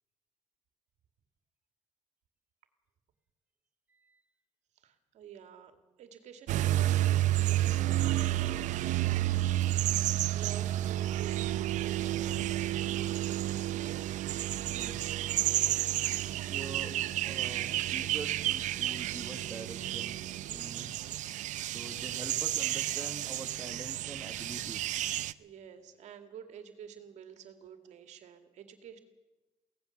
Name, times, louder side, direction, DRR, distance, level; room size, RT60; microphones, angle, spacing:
voice 1, 3.9-4.2 14.7-15.1 16.5-16.9 17.2-20.2 20.5-20.9 21.4-24.9, right 2 dB, 15° right, 4 dB, 1.6 m, -45 dB
voice 2, 4.8-5.7 6.0-9.6 10.3-14.0 25.3-29.2, right 8 dB, 70° right, 7 dB, 2.2 m, -50 dB
sound 1, 6.5-25.3, right 14 dB, 85° right, 0.6 m, -31 dB
24.0 x 17.0 x 7.1 m, 1.1 s
cardioid pair, 145°, 12 cm